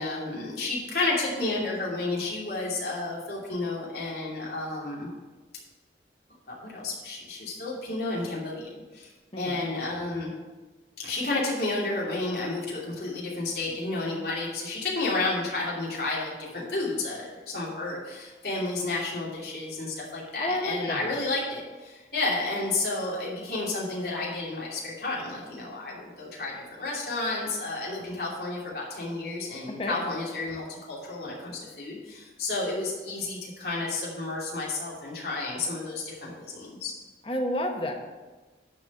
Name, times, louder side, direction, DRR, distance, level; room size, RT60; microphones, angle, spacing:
voice 1, 0.0-5.1 6.5-8.7 8.9-10.3 11.0-36.9, left 2 dB, 60° left, -5 dB, 2.8 m, -31 dB
voice 2, 20.4-21.1 29.8-30.0 37.3-37.9, left 1 dB, 30° left, 2 dB, 1.1 m, -30 dB
11.0 x 4.2 x 7.3 m, 1.2 s
head